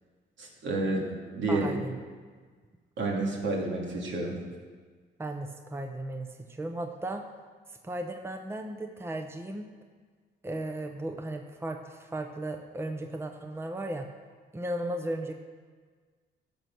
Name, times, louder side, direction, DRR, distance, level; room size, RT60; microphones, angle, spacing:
voice 1, 0.4-1.1 1.3-1.7 3.0-4.4, right 2 dB, 70° right, -1 dB, 2.4 m, -29 dB
voice 2, 1.5-2.0 5.2-7.2 7.8-9.7 10.4-14.1 14.5-15.3, right 1 dB, 10° right, 5 dB, 0.8 m, -35 dB
12.0 x 6.3 x 6.1 m, 1.5 s
cardioid pair, 90°, 20 cm